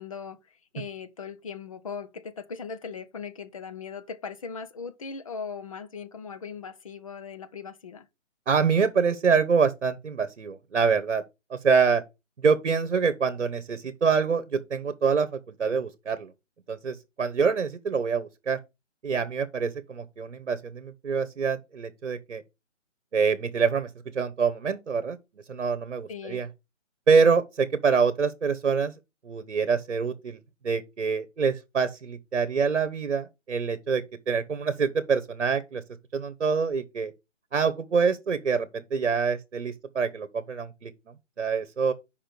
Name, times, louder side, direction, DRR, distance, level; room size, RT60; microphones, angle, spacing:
voice 1, 0.0-8.1 26.1-26.4, left 5 dB, 30° left, 0.7 m, -39 dB
voice 2, 8.5-11.2 11.5-12.0 12.4-16.3 16.7-18.6 19.0-22.4 23.1-25.2 25.5-26.5 27.1-28.9 29.2-30.4 30.6-35.8 36.1-37.1 37.5-40.9 41.4-41.9, right 5 dB, 65° right, 1.1 m, -25 dB
5.6 x 5.1 x 6.4 m
figure-of-eight pair, 145°, 37 cm